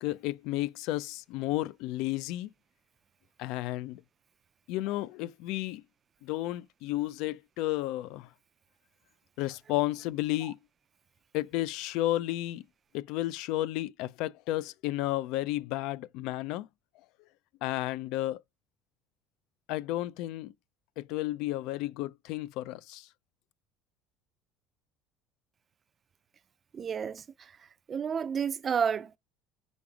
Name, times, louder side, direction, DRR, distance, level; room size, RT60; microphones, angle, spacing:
voice 1, 0.0-2.5 3.4-4.0 4.7-5.8 6.2-8.3 9.4-10.6 11.3-12.6 12.9-16.7 17.6-18.4 19.7-20.5 21.0-23.1, left 16 dB, 65° left, 0.4 m, -32 dB
voice 2, 26.7-27.2 27.9-29.2, right 7 dB, 25° right, 0.4 m, -30 dB
5.2 x 4.8 x 4.8 m
cardioid pair, 160°, 0 cm